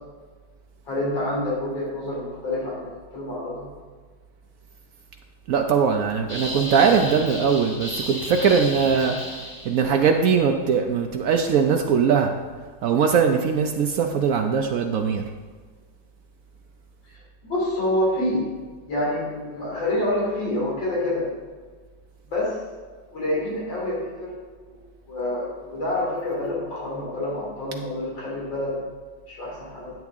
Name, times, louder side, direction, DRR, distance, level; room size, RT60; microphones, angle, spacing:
voice 1, 0.9-3.7 17.4-18.5 18.9-21.3 22.3-22.6 23.1-24.4 24.7-28.8 29.3-29.9, left 1 dB, 65° left, -6 dB, 3.7 m, -27 dB
voice 2, 5.5-9.2 9.6-12.3 12.8-15.2, right 6 dB, 85° right, 3 dB, 0.7 m, -20 dB
sound 1, 6.3-10.0, equal, 30° left, 2.4 m, -33 dB
10.5 x 8.1 x 3.6 m, 1.5 s
omnidirectional pair, 2.2 m